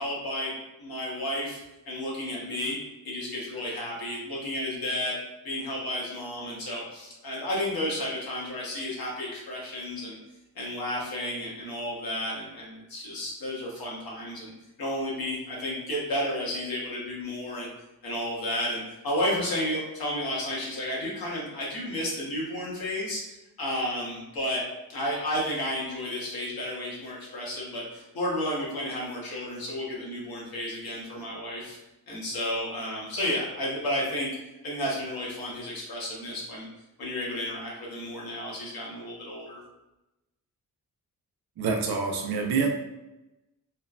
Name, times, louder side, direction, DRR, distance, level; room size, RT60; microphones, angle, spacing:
voice 1, 0.0-1.6 1.8-2.8 3.0-5.2 5.4-10.2 10.5-14.5 14.8-17.7 18.0-24.6 24.9-31.8 32.1-34.3 34.6-36.7 37.0-39.6, left 1 dB, 75° left, -4 dB, 1.0 m, -32 dB
voice 2, 41.6-42.7, right 5 dB, 85° right, 3 dB, 0.5 m, -26 dB
3.2 x 2.0 x 2.3 m, 0.97 s
wide cardioid pair, 100°, 37 cm